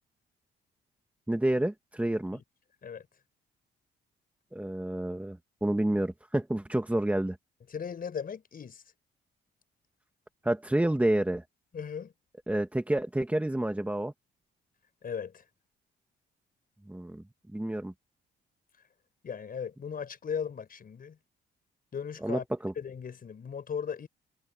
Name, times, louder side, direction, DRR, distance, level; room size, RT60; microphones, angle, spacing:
voice 1, 1.3-2.4 4.5-7.4 10.4-11.4 12.5-14.1 16.9-17.2 17.5-17.9 22.2-22.7, right 1 dB, 5° right, 1.9 m, -29 dB
voice 2, 7.7-8.8 11.7-12.1 15.0-15.4 19.2-21.2 21.9-22.4 22.8-24.1, left 7 dB, 45° left, 5.3 m, -37 dB
cardioid pair, 90°, 20 cm